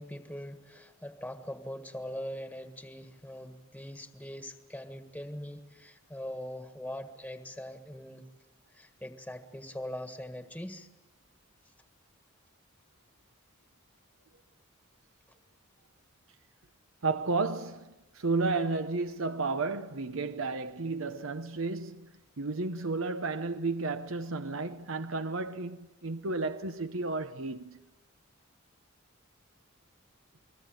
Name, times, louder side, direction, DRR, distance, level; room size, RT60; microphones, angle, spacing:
voice 1, 0.0-8.2 8.7-10.9, equal, 5° left, 1.6 m, -42 dB
voice 2, 17.0-22.1 22.4-27.8, right 3 dB, 70° right, 1.0 m, -32 dB
29.0 x 21.5 x 9.1 m
head